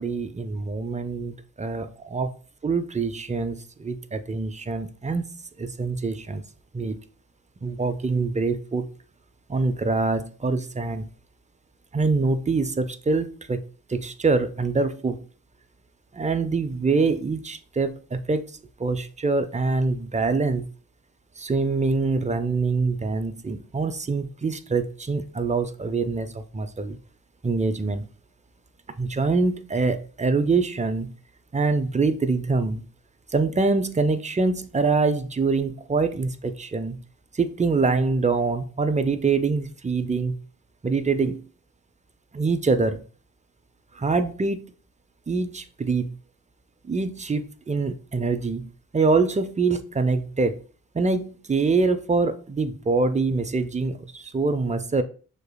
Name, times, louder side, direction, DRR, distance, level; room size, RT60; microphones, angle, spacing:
voice 1, 0.0-2.3 2.6-5.2 5.6-6.4 6.7-7.0 7.6-8.9 9.5-11.1 11.9-13.6 13.9-15.2 16.1-18.4 18.8-20.6 21.4-27.0 27.4-28.0 29.0-31.1 31.5-32.8 33.3-37.0 37.3-40.4 40.8-41.4 42.3-43.0 43.9-44.6 45.3-46.1 46.8-50.6 50.9-55.0, right 4 dB, 20° right, 0.4 m, -24 dB
6.4 x 2.9 x 2.2 m
wide cardioid pair, 80°, 36 cm